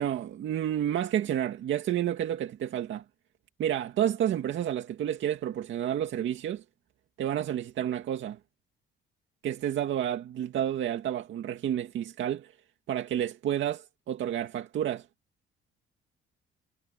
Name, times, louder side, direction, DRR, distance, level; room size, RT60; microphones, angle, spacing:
voice 1, 0.0-3.0 3.6-6.6 7.2-8.4 9.4-12.5 12.9-15.1, right 10 dB, 70° right, 2.2 m, -30 dB
cardioid pair, 125°, 20 cm